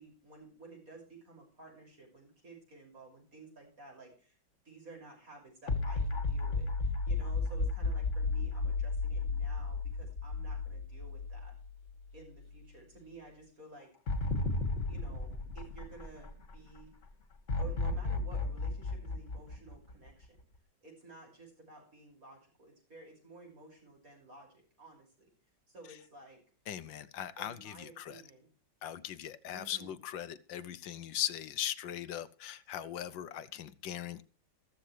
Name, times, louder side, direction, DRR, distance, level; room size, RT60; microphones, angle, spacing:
voice 1, 0.0-4.4 4.6-11.5 12.1-13.9 14.9-16.9 17.6-20.4 20.8-25.3 25.7-26.4 27.4-28.5 29.5-29.9, right 3 dB, 45° right, 6.5 m, -53 dB
sound 1, 5.7-12.0 12.4-12.5 14.1-16.5 17.5-20.3, left 3 dB, 40° left, 2.1 m, -33 dB
voice 2, 26.7-28.2 28.8-34.2, left 11 dB, 75° left, 1.4 m, -39 dB
15.0 x 14.0 x 3.2 m
omnidirectional pair, 2.1 m